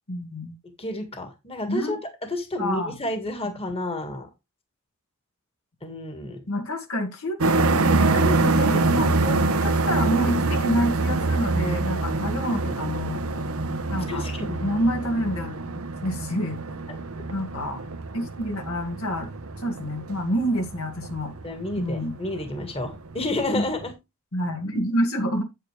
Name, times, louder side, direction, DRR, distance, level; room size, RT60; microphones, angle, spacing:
voice 1, 0.1-0.6 1.7-2.0 2.6-2.9 6.5-7.4 8.1-13.2 13.9-14.2 14.6-15.5 16.0-16.6 17.3-17.8 18.1-19.3 19.6-21.3 21.8-22.2 23.5-23.7 24.3-25.4, equal, 70° left, 2.1 m, -27 dB
voice 2, 0.8-2.0 2.3-4.3 5.8-6.4 12.3-12.4 14.1-14.6 21.4-23.9, left 2 dB, 25° left, 1.8 m, -30 dB
sound 1, 7.4-23.9, right 3 dB, 75° right, 1.1 m, -25 dB
8.9 x 8.4 x 3.3 m
head